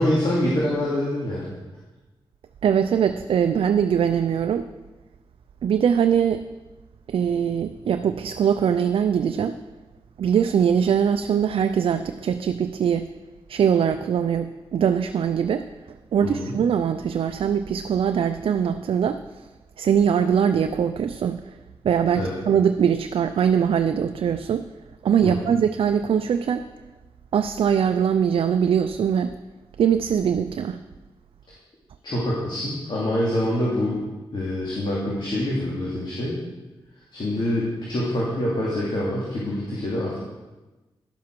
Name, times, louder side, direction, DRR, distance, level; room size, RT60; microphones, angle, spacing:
voice 1, 0.0-1.6 16.2-16.5 22.1-22.4 25.2-25.5 32.0-34.0 34.3-36.4 37.1-40.2, left 1 dB, 60° left, -6 dB, 2.5 m, -25 dB
voice 2, 2.6-4.7 5.6-6.4 7.1-9.6 10.2-13.1 13.5-15.7 16.1-19.2 19.8-21.4 21.8-24.7 25.0-26.7 27.3-29.3 29.8-30.8, right 8 dB, 75° right, 8 dB, 0.4 m, -22 dB
11.0 x 7.3 x 4.6 m, 1.1 s
cardioid pair, 55°, 9 cm